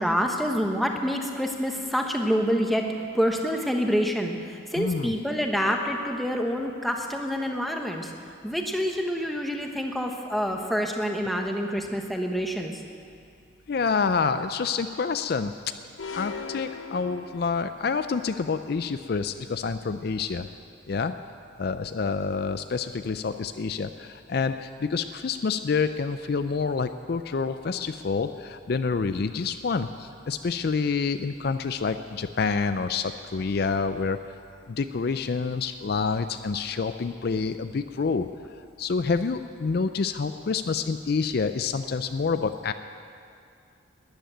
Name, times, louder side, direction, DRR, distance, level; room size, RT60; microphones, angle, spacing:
voice 1, 0.0-2.8 3.1-8.1 8.4-12.8, equal, ahead, 2 dB, 1.0 m, -27 dB
voice 2, 4.8-5.1 13.7-15.5 16.1-20.5 20.9-21.1 21.6-34.2 34.7-38.3 38.8-42.7, left 5 dB, 50° left, 10 dB, 0.4 m, -27 dB
sound 1, 16.0-18.0, left 5 dB, 80° left, 0.9 m, -38 dB
13.5 x 10.5 x 9.1 m, 2.4 s
head